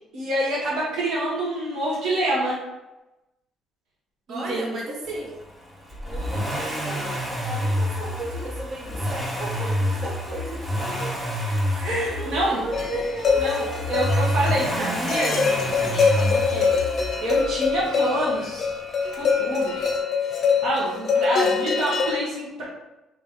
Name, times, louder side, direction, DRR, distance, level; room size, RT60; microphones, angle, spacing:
voice 1, 0.1-2.6 4.3-4.8 11.8-12.6 13.4-16.7 17.2-18.7 19.2-19.9 20.3-22.7, right 1 dB, 75° right, -6 dB, 1.2 m, -27 dB
voice 2, 4.3-5.4 6.0-11.1 11.7-13.7, right 2 dB, 50° right, -1 dB, 0.7 m, -35 dB
Accelerating revving vroom, 5.9-17.8 19.1-19.2, equal, 15° right, 0.8 m, -28 dB
sound 1, 12.7-22.1, left 5 dB, 35° left, 0.6 m, -24 dB
3.4 x 2.9 x 3.6 m, 0.99 s
cardioid pair, 150°, 0 cm